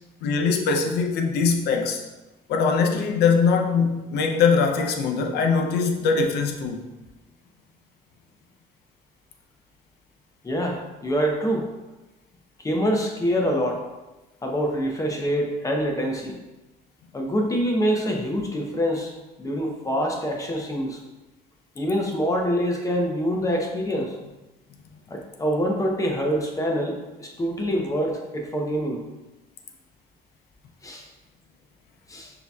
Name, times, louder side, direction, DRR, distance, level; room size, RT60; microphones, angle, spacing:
voice 1, 0.2-2.0 2.5-6.9, left 5 dB, 75° left, 4 dB, 0.6 m, -22 dB
voice 2, 10.4-11.7 12.6-13.8 14.4-16.4 17.1-19.1 19.4-21.0 21.8-24.2 25.1-29.0 30.8-31.1 32.1-32.3, equal, 20° left, 1 dB, 0.7 m, -25 dB
6.2 x 2.8 x 2.3 m, 1.1 s
cardioid pair, 110°, 17 cm